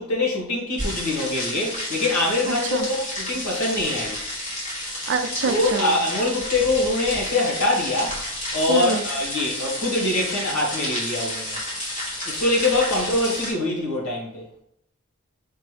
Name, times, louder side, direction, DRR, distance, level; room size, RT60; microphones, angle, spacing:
voice 1, 0.0-4.2 5.5-8.2 8.5-11.6 12.3-14.4, left 2 dB, 90° left, -2 dB, 1.5 m, -24 dB
sound 1, 0.8-13.5, left 1 dB, 35° left, 1.2 m, -31 dB
voice 2, 5.1-6.0 8.7-9.0, right 4 dB, 55° right, 8 dB, 0.4 m, -25 dB
4.4 x 3.0 x 3.2 m, 0.71 s
head